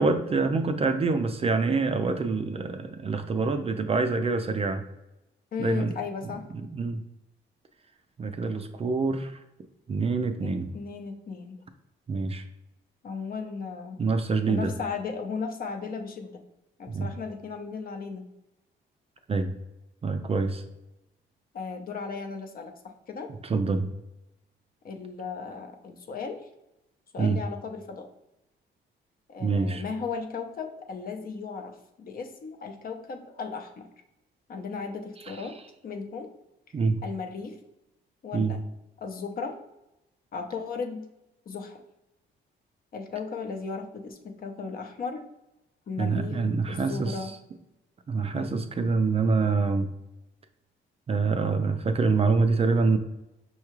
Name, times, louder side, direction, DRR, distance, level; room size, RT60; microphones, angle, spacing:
voice 1, 0.0-4.8 5.6-5.9 6.8-7.0 8.2-9.4 9.9-10.7 12.1-12.4 14.0-14.7 16.9-17.1 19.3-19.5 20.0-20.6 23.4-23.9 27.2-27.4 29.4-29.8 36.7-37.0 38.3-38.6 46.0-47.2 48.1-49.9 51.1-53.0, right 4 dB, 30° right, 7 dB, 0.4 m, -26 dB
voice 2, 5.5-6.5 10.4-11.6 13.0-14.0 14.5-16.4 16.8-18.2 21.5-23.3 24.8-26.4 27.1-28.1 29.3-33.9 34.5-35.6 35.8-36.3 37.0-37.6 38.2-38.6 39.0-39.6 40.3-41.1 41.5-41.8 42.9-45.3 45.9-46.4 46.7-47.3 48.3-48.5, left 5 dB, 50° left, 5 dB, 0.6 m, -36 dB
5.6 x 2.3 x 3.0 m, 0.91 s
cardioid pair, 90°, 20 cm